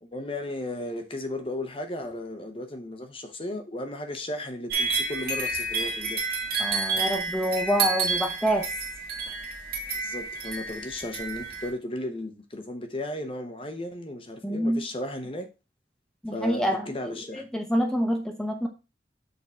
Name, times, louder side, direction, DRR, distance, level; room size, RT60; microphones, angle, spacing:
voice 1, 0.0-6.2 9.9-15.5 16.3-17.5, left 1 dB, 30° left, 0.9 m, -35 dB
sound 1, 4.7-11.7, right 4 dB, 55° right, 1.7 m, -30 dB
voice 2, 6.6-8.7 14.4-14.9 16.2-18.7, equal, 5° left, 0.9 m, -27 dB
6.8 x 3.9 x 4.2 m
head